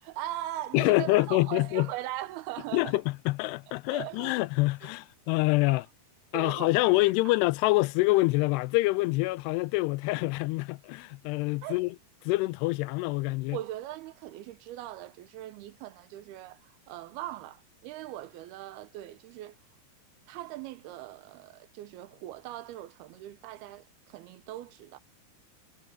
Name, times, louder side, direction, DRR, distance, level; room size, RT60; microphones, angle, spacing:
voice 1, 0.0-3.0 3.9-4.4 5.7-5.8 6.3-6.7 7.3-7.4 11.6-11.8 13.5-19.6 20.3-25.0, right 14 dB, 80° right, 2.7 m, -40 dB
voice 2, 0.7-1.9 2.7-5.9 6.3-12.0 12.3-13.6, left 21 dB, 90° left, 2.7 m, -26 dB
omnidirectional pair, 4.7 m